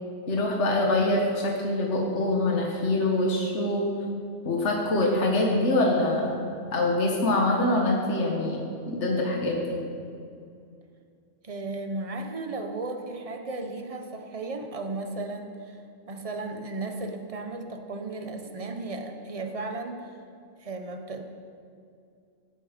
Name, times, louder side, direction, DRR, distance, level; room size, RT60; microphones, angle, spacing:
voice 1, 0.3-3.9 4.4-6.4 6.7-8.6 8.9-9.8, left 2 dB, 60° left, -1 dB, 1.8 m, -24 dB
voice 2, 11.4-20.1 20.6-21.2, right 2 dB, 30° right, 5 dB, 1.1 m, -35 dB
16.0 x 11.5 x 5.2 m, 2.4 s
omnidirectional pair, 1.3 m